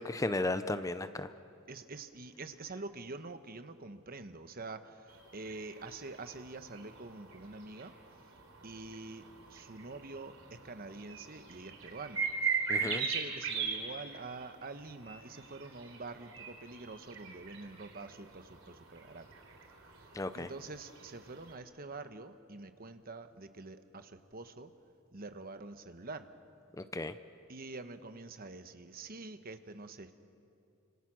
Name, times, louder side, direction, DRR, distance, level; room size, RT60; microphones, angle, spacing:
voice 1, 0.0-1.3 12.7-13.0 20.1-20.5 26.8-27.1, left 2 dB, 15° left, 11 dB, 0.6 m, -34 dB
voice 2, 1.7-7.9 8.6-12.2 12.8-19.3 20.0-24.7 25.1-26.3 27.5-30.1, right 3 dB, 45° right, 9 dB, 1.1 m, -46 dB
sound 1, 5.1-21.5, right 5 dB, 75° right, 3.9 m, -41 dB
30.0 x 26.5 x 6.3 m, 2.7 s
head